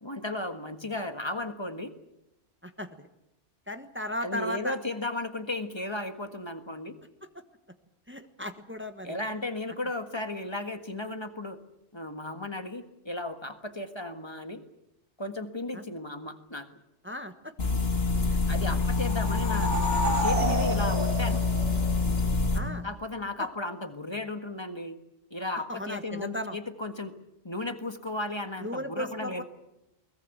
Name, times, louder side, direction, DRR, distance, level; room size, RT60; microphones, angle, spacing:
voice 1, 0.0-1.9 4.2-7.0 9.0-11.6 11.9-14.6 15.2-16.7 18.5-19.7 20.0-21.4 22.8-25.0 25.3-27.1 27.4-29.4, left 2 dB, 25° left, 8 dB, 1.6 m, -35 dB
voice 2, 2.6-3.1 3.7-4.8 8.1-9.2 15.7-15.8 17.0-17.5 18.3-18.8 22.5-22.8 25.7-26.6 28.6-29.4, left 1 dB, 10° right, 7 dB, 1.3 m, -36 dB
sound 1, 17.6-22.6, left 3 dB, 60° left, 3.0 m, -26 dB
sound 2, 18.8-22.3, right 1 dB, 85° right, 5.4 m, -31 dB
22.0 x 20.5 x 7.9 m, 0.87 s
omnidirectional pair, 1.2 m